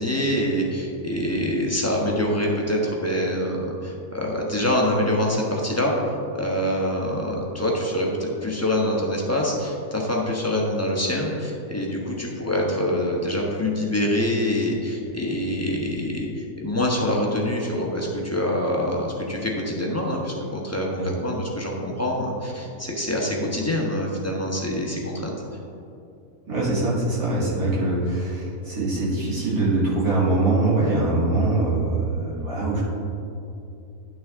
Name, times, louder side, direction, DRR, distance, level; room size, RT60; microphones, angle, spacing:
voice 1, 0.0-5.9 6.3-25.3, left 1 dB, 10° left, -3 dB, 0.9 m, -25 dB
voice 2, 26.5-32.8, right 2 dB, 80° right, -8 dB, 2.9 m, -23 dB
11.0 x 6.2 x 3.6 m, 2.7 s
omnidirectional pair, 1.6 m